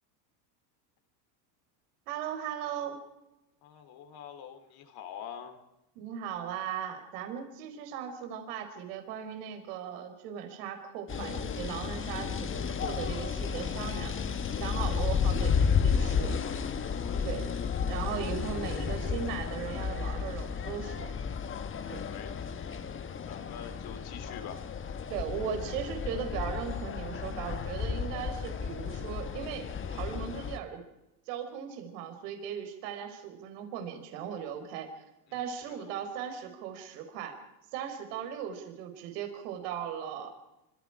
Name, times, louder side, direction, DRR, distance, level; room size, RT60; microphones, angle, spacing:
voice 1, 2.1-3.0 5.9-14.1 14.5-16.4 17.2-17.5 17.9-21.1 21.9-22.0 25.1-30.8 31.3-35.0 35.3-37.4 37.7-40.3, right 8 dB, 70° right, 5 dB, 4.8 m, -38 dB
voice 2, 3.6-5.6 14.8-15.0 17.0-18.0 22.1-22.5 23.1-24.6 35.7-35.9, left 8 dB, 45° left, 6 dB, 3.6 m, -46 dB
sound 1, 11.1-30.6, left 6 dB, 25° left, 1.7 m, -32 dB
26.5 x 25.5 x 5.0 m, 0.93 s
supercardioid pair, 120°, 50 cm